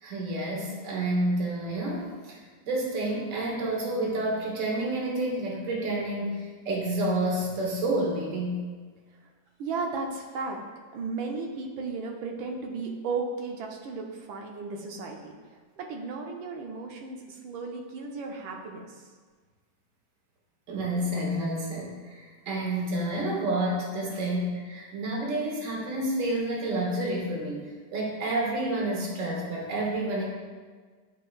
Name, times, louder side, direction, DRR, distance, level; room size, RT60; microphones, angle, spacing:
voice 1, 0.0-2.4 2.6-8.6 20.7-27.6 27.9-30.3, right 1 dB, 45° right, -2 dB, 1.4 m, -29 dB
voice 2, 9.6-10.6 10.9-19.1 24.1-24.3, right 4 dB, 85° right, 1 dB, 1.5 m, -35 dB
9.6 x 4.6 x 2.4 m, 1.5 s
omnidirectional pair, 2.1 m